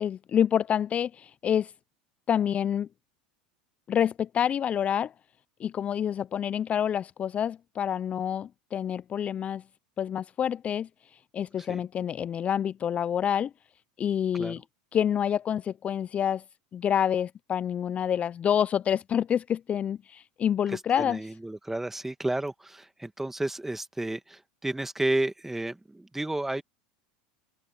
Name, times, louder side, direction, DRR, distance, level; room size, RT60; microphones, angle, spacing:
voice 1, 0.0-1.7 2.3-2.9 3.9-5.1 5.6-9.6 10.0-13.5 14.0-14.6 14.9-16.4 16.7-21.2, left 9 dB, 30° left, 0.4 m, -27 dB
voice 2, 20.7-26.6, right 2 dB, 5° right, 1.8 m, -32 dB
hypercardioid pair, 100°, 4 cm